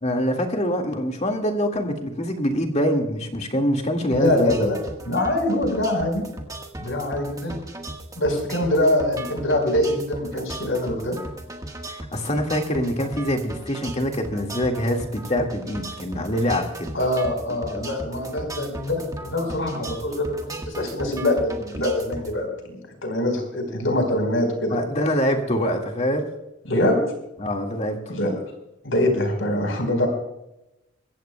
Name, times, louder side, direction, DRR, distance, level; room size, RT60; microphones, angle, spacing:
voice 1, 0.0-4.5 11.9-16.9 24.7-26.3 27.4-28.0, equal, 35° left, 2 dB, 2.1 m, -24 dB
voice 2, 4.1-4.8 5.0-6.2 6.8-7.6 8.2-11.2 16.9-24.8 26.6-27.0 28.1-28.3 28.8-30.1, left 1 dB, 75° left, 3 dB, 4.6 m, -24 dB
sound 1, 4.1-22.3, right 1 dB, 15° right, 1.5 m, -37 dB
25.0 x 15.0 x 2.3 m, 0.90 s
head